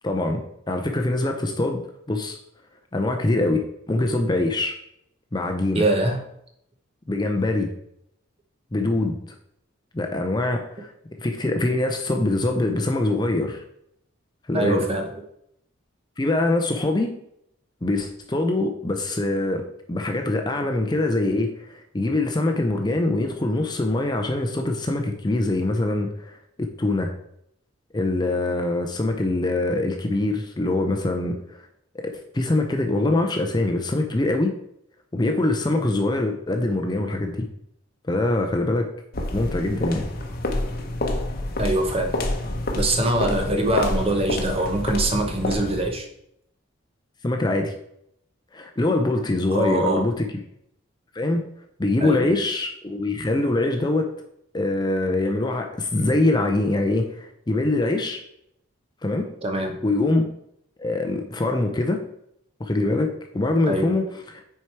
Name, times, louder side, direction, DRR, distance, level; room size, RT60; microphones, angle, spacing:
voice 1, 0.0-1.8 2.1-2.4 2.9-4.7 5.3-5.9 7.1-7.7 8.7-9.2 9.9-13.6 14.5-14.9 16.2-17.1 17.8-27.1 27.9-31.7 31.9-34.5 35.1-37.5 38.1-38.9 39.3-40.1 47.2-47.7 48.5-50.3 51.1-51.4 51.8-54.1 54.5-58.2 59.0-59.3 59.8-60.3 60.8-62.0 62.6-64.4, left 2 dB, 20° left, 4 dB, 0.5 m, -24 dB
voice 2, 5.7-6.2 14.5-15.1 41.6-42.2 42.7-46.1 49.5-50.0 52.0-52.3 59.4-59.9 63.7-63.9, right 1 dB, 30° right, 4 dB, 0.8 m, -23 dB
sound 1, 39.1-46.0, left 1 dB, 45° left, 0.8 m, -28 dB
6.3 x 4.5 x 4.6 m, 0.75 s
head